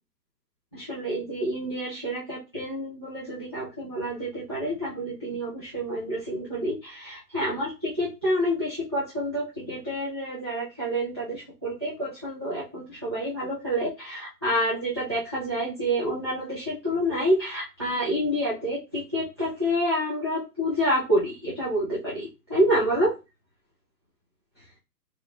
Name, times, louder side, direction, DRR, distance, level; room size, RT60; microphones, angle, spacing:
voice 1, 0.7-23.1, equal, 20° right, -9 dB, 0.4 m, -28 dB
4.5 x 2.9 x 2.3 m, 0.27 s
hypercardioid pair, 140°, 50 cm